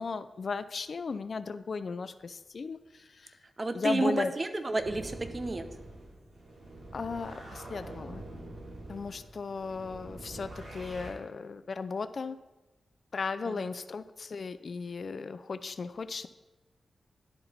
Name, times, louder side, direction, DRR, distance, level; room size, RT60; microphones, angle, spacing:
voice 1, 0.0-3.3 3.7-4.3 6.9-8.2 8.9-12.4 13.1-16.3, left 4 dB, 60° left, 13 dB, 0.3 m, -36 dB
voice 2, 3.6-5.7 13.5-13.6, right 2 dB, 40° right, 9 dB, 0.7 m, -31 dB
sound 1, 4.8-11.1, right 1 dB, 65° right, 2.5 m, -45 dB
11.0 x 4.2 x 4.1 m, 1.1 s
cardioid pair, 55°, 0 cm